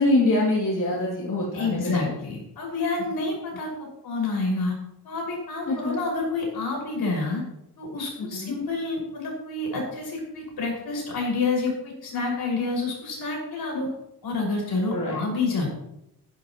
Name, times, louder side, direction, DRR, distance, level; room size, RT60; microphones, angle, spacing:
voice 1, 0.0-2.1 5.7-6.0 8.2-8.5 14.9-15.2, left 2 dB, 50° left, -5 dB, 2.8 m, -24 dB
voice 2, 1.5-4.7 5.0-7.4 7.8-13.9 14.2-15.7, left 3 dB, 70° left, -2 dB, 5.7 m, -28 dB
15.0 x 11.5 x 3.0 m, 0.84 s
wide cardioid pair, 170°, 39 cm